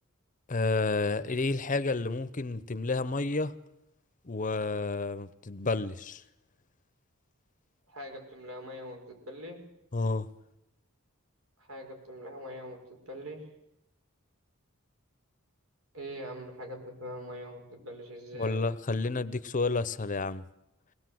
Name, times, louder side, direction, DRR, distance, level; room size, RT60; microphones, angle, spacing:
voice 1, 0.5-3.5 4.2-6.2 9.9-10.3 18.4-20.4, left 3 dB, 35° left, 15 dB, 0.8 m, -30 dB
voice 2, 7.9-9.6 11.6-13.5 15.9-18.6, equal, 85° right, 3 dB, 5.6 m, -43 dB
23.0 x 19.0 x 7.8 m, 0.85 s
head